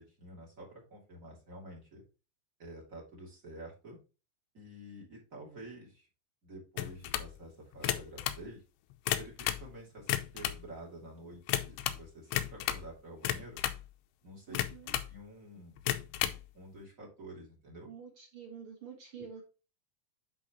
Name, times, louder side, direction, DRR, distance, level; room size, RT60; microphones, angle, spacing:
voice 1, 0.0-2.0 2.6-4.0 4.5-6.1 6.4-8.6 9.2-13.6 14.2-14.5 15.1-15.8 16.5-17.9, right 1 dB, 25° right, -2 dB, 2.6 m, -49 dB
sound 1, 6.8-7.3 7.7-8.4 8.9-9.7 10.0-10.6 11.5-12.0 12.3-12.9 13.2-13.8 14.5-15.1 15.8-16.4, left 13 dB, 85° left, 2.8 m, -33 dB
voice 2, 14.5-14.9 17.9-19.4, right 7 dB, 65° right, 1 dB, 1.3 m, -48 dB
10.0 x 4.8 x 3.0 m, 0.31 s
omnidirectional pair, 4.8 m